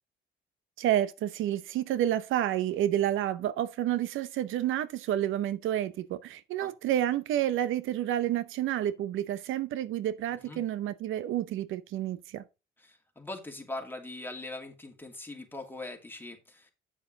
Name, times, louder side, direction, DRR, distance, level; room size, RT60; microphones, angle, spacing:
voice 1, 0.8-12.4, right 12 dB, 85° right, 0.7 m, -29 dB
voice 2, 10.3-10.6 12.8-16.7, left 2 dB, 10° left, 2.6 m, -41 dB
8.4 x 7.1 x 3.9 m
cardioid pair, 90°, 20 cm